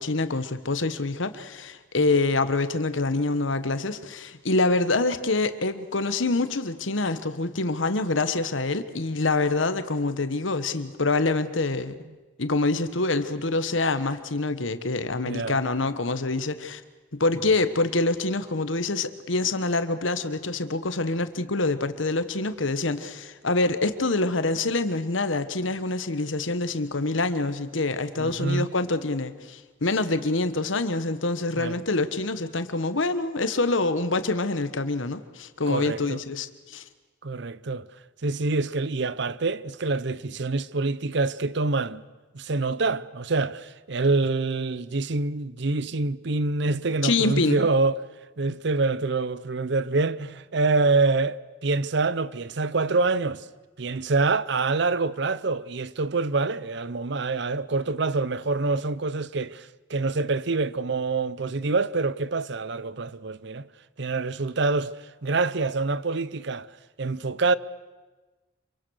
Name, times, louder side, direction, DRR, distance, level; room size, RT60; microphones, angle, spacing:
voice 1, 0.0-12.0 12.4-16.8 17.1-36.8 47.0-47.6, left 3 dB, 80° left, 1.3 m, -26 dB
voice 2, 15.3-15.6 28.2-28.7 31.6-31.8 35.7-36.2 37.2-37.9 38.2-42.0 42.3-48.0 48.4-53.4 53.8-63.7 64.0-64.9 65.2-66.7 67.0-67.6, right 3 dB, 60° right, 0.7 m, -26 dB
26.5 x 24.0 x 6.5 m
head